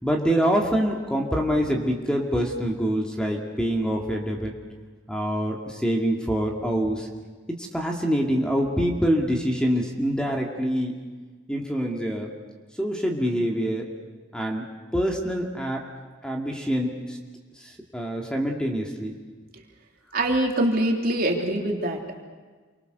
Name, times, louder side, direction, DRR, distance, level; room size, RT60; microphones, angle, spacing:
voice 1, 0.0-4.5 5.1-7.1 7.5-10.9 11.5-12.3 12.8-13.9 14.3-14.6 14.9-15.8 16.2-17.2 17.6-19.1, equal, 5° left, 0 dB, 2.3 m, -25 dB
voice 2, 20.1-22.2, right 1 dB, 50° right, 1 dB, 3.4 m, -24 dB
28.5 x 24.0 x 6.8 m, 1.4 s
head